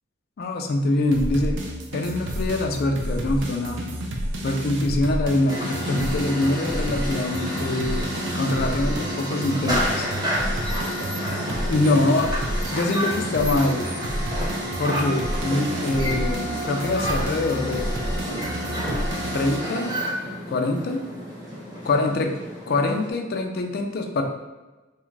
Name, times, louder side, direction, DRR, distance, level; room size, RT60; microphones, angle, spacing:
voice 1, 0.4-1.6 1.9-3.8 4.4-8.1 8.3-10.1 11.7-12.3 12.7-13.9 14.8-17.9 19.3-19.9 20.5-21.0 21.8-22.3 22.7-24.2, left 2 dB, 50° left, 3 dB, 0.3 m, -24 dB
sound 1, 1.1-19.6, right 1 dB, 65° right, 0.4 m, -30 dB
sound 2, 5.5-23.1, equal, 20° right, 0.7 m, -30 dB
2.4 x 2.3 x 3.1 m, 1.1 s
head